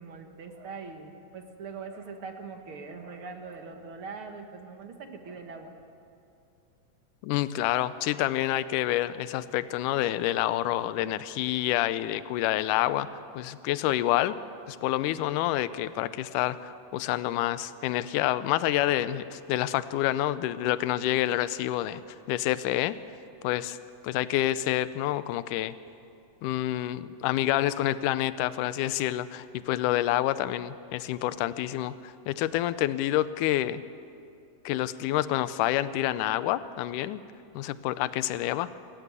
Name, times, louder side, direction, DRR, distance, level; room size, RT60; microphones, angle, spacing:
voice 1, 0.0-5.7, right 4 dB, 50° right, 5 dB, 1.9 m, -42 dB
voice 2, 7.2-13.1 13.3-14.4 14.7-22.0 22.3-23.0 23.4-23.8 24.0-25.7 26.4-33.8 34.7-37.2 37.5-38.7, left 14 dB, 80° left, 15 dB, 2.1 m, -28 dB
27.5 x 14.0 x 8.2 m, 2.6 s
omnidirectional pair, 3.9 m